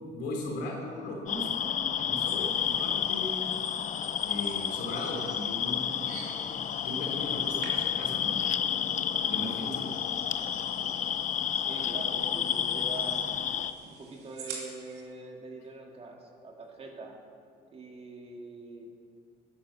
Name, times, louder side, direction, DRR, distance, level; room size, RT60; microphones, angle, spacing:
voice 1, 0.1-3.4 4.2-6.2 6.8-8.4 9.3-9.8, left 1 dB, 85° left, 0 dB, 3.4 m, -37 dB
sound 1, 1.3-13.7, left 9 dB, 50° left, 0.7 m, -30 dB
sound 2, 2.2-15.0, right 4 dB, 80° right, 2.9 m, -49 dB
voice 2, 11.5-13.3 13.8-17.2 17.7-18.9, right 3 dB, 35° right, 1 dB, 2.3 m, -43 dB
11.5 x 10.5 x 7.0 m, 2.4 s
cardioid pair, 110°, 17 cm